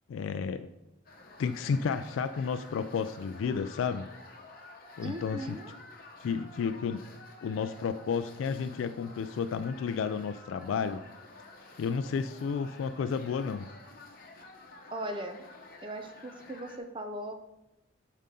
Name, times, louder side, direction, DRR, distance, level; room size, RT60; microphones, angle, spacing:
voice 1, 0.1-0.7 1.4-4.1 5.0-5.6 6.2-7.0 7.4-11.0 11.8-13.7, left 6 dB, 85° left, 10 dB, 0.3 m, -32 dB
sound 1, 1.1-16.8, left 2 dB, 45° left, 1.0 m, -51 dB
voice 2, 5.0-5.7 14.9-15.4 15.8-17.3, right 1 dB, 25° right, 6 dB, 0.5 m, -38 dB
7.4 x 5.5 x 3.7 m, 0.92 s
head